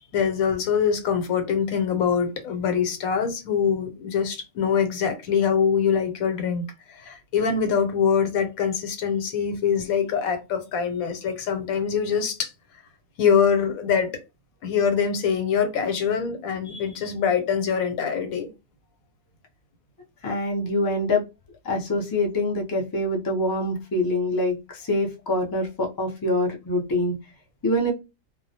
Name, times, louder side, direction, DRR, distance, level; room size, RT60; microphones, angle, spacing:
voice 1, 0.1-12.5 13.2-14.2 14.6-18.5, left 7 dB, 90° left, 1.1 m, -24 dB
voice 2, 20.2-21.2 21.6-27.1 27.6-27.9, left 1 dB, 35° left, 0.3 m, -25 dB
2.3 x 2.1 x 2.7 m
omnidirectional pair, 1.4 m